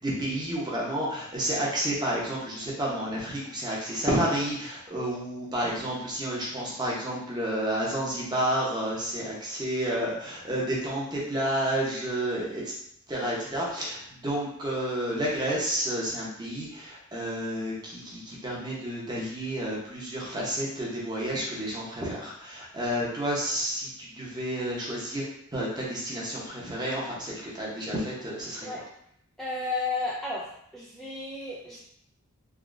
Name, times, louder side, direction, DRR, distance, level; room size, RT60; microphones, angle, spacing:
voice 1, 0.0-12.6 13.1-25.2 25.5-28.7, right 1 dB, 20° right, -5 dB, 0.9 m, -30 dB
voice 2, 29.4-31.8, left 3 dB, ahead, -6 dB, 0.3 m, -33 dB
3.6 x 2.7 x 2.5 m, 0.70 s
head